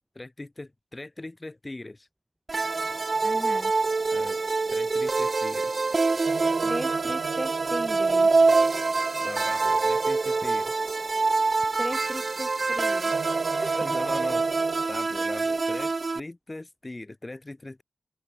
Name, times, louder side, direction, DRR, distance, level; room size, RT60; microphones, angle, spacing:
voice 1, 0.1-2.1 4.1-4.4 4.7-5.8 9.2-10.8 13.6-14.5 14.9-17.8, left 2 dB, 25° left, 5.1 m, -40 dB
sound 1, 2.5-16.2, right 3 dB, 50° right, 0.7 m, -25 dB
sound 2, 2.6-5.3 6.2-12.0 13.1-14.9, right 6 dB, 85° right, 0.8 m, -38 dB
voice 2, 3.2-3.7 6.6-8.3 11.8-12.5 12.8-13.1, right 1 dB, 10° right, 0.4 m, -35 dB
open air
cardioid pair, 60°, 0 cm